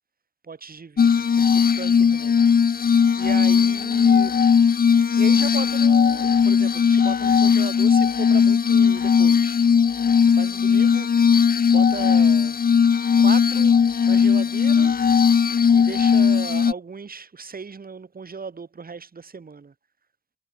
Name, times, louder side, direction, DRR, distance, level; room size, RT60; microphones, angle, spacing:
voice 1, 0.4-2.4 3.2-4.4 5.2-9.6 10.2-11.3 11.7-12.6 13.2-13.8 14.1-15.0 15.7-19.7, right 5 dB, 60° right, 5.5 m, -36 dB
Glass, 1.0-16.7, left 6 dB, 60° left, 1.0 m, -18 dB
cardioid pair, 50°, 17 cm